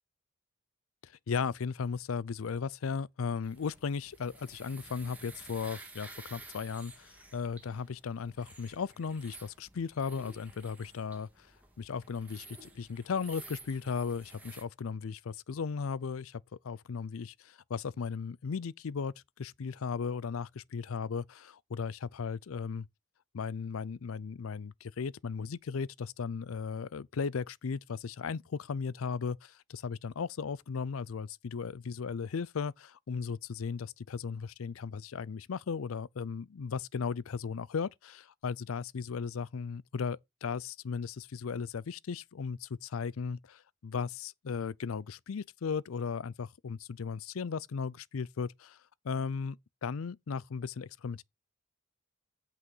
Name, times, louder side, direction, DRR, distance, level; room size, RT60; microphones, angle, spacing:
voice 1, 1.0-11.5 11.8-22.9 23.3-48.8 49.0-51.2, left 5 dB, 85° left, 0.5 m, -36 dB
sound 1, 3.4-14.6, right 3 dB, 5° right, 2.4 m, -52 dB
8.3 x 6.0 x 5.5 m
head